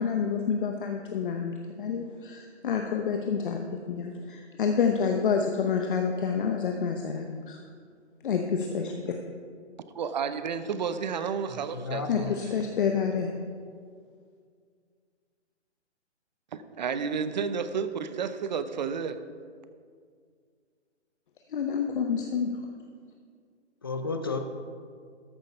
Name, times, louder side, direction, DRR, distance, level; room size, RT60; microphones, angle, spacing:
voice 1, 0.0-7.6 8.2-9.1 12.1-13.3 21.5-22.5, left 6 dB, 45° left, 3 dB, 0.8 m, -28 dB
voice 2, 10.0-12.4 16.5-19.2, right 6 dB, 40° right, 11 dB, 0.6 m, -31 dB
voice 3, 11.7-12.3 23.8-24.4, left 4 dB, 20° left, 6 dB, 0.4 m, -32 dB
13.5 x 6.5 x 5.3 m, 2.1 s
hypercardioid pair, 150°, 35 cm